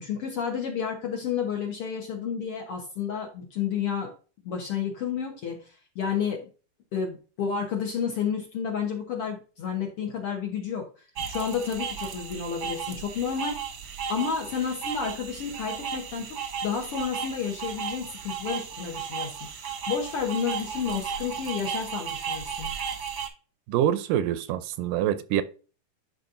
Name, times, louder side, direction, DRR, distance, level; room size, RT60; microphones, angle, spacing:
voice 1, 0.0-4.1 4.4-6.5 6.9-10.9 11.3-13.6 14.1-19.4 19.9-22.7, left 7 dB, 60° left, 1.6 m, -31 dB
sound 1, 11.2-23.3, right 7 dB, 60° right, 1.3 m, -35 dB
voice 2, 23.7-25.4, right 11 dB, 80° right, 2.1 m, -25 dB
11.5 x 4.4 x 2.6 m
omnidirectional pair, 3.8 m